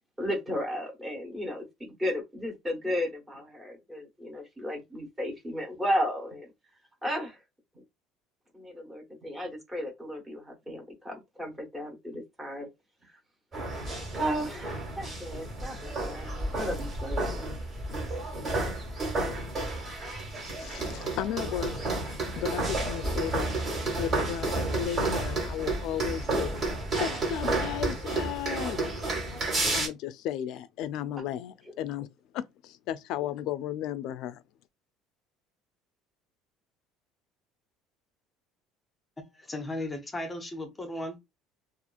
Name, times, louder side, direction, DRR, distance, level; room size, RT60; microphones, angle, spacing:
voice 1, 0.2-1.6 2.0-6.5 7.0-7.4 8.5-12.7 13.0-13.1 14.2-17.5, equal, 10° right, 1.1 m, -34 dB
sound 1, 13.5-29.9, right 2 dB, 30° right, 1.3 m, -31 dB
voice 2, 20.4-21.9 22.3-23.6 24.0-26.5 27.0-28.8 29.7-32.1 32.3-34.4, left 10 dB, 60° left, 0.3 m, -34 dB
voice 3, 39.3-41.2, left 1 dB, 15° left, 0.6 m, -36 dB
2.8 x 2.4 x 2.3 m
cardioid pair, 145°, 0 cm